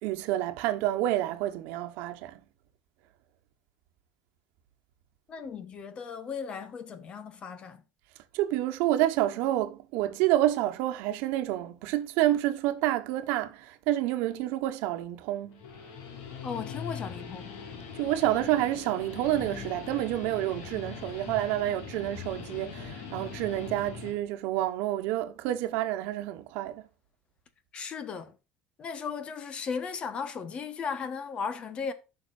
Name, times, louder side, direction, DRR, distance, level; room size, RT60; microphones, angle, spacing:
voice 1, 0.0-2.4 8.3-15.6 17.9-26.9, right 14 dB, 80° right, 1.1 m, -28 dB
voice 2, 5.3-7.8 16.4-17.5 27.7-28.3 28.8-31.9, left 6 dB, 30° left, 1.1 m, -36 dB
Guitar, 15.4-24.2, left 6 dB, 80° left, 3.1 m, -41 dB
14.0 x 5.9 x 2.5 m
cardioid pair, 160°, 3 cm